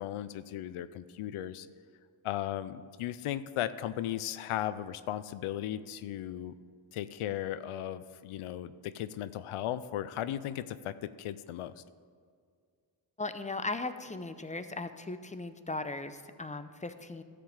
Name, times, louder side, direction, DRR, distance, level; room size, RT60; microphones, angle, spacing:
voice 1, 0.0-1.7 2.2-6.5 6.9-11.8, left 12 dB, 90° left, 14 dB, 0.5 m, -36 dB
voice 2, 13.2-17.2, left 2 dB, 15° left, 10 dB, 0.6 m, -38 dB
12.5 x 5.1 x 7.2 m, 2.1 s
cardioid pair, 75°, 49 cm